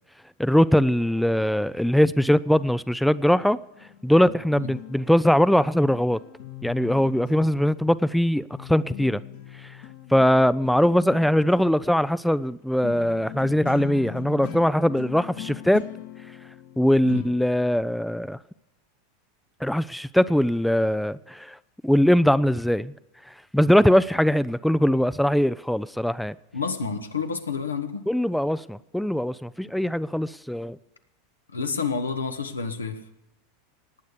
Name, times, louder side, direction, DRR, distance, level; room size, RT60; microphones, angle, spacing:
voice 1, 0.4-3.6 4.0-6.2 6.6-9.2 9.6-9.7 10.1-15.9 16.8-18.4 19.6-21.6 21.8-22.9 23.5-26.3 28.1-30.8, equal, ahead, 0.5 m, -21 dB
sound 1, 3.7-8.3 8.5-17.4, left 10 dB, 65° left, 1.6 m, -41 dB
voice 2, 26.5-28.1 31.5-33.0, left 5 dB, 90° left, 1.4 m, -29 dB
18.5 x 9.4 x 6.8 m
hypercardioid pair, 90°, 0 cm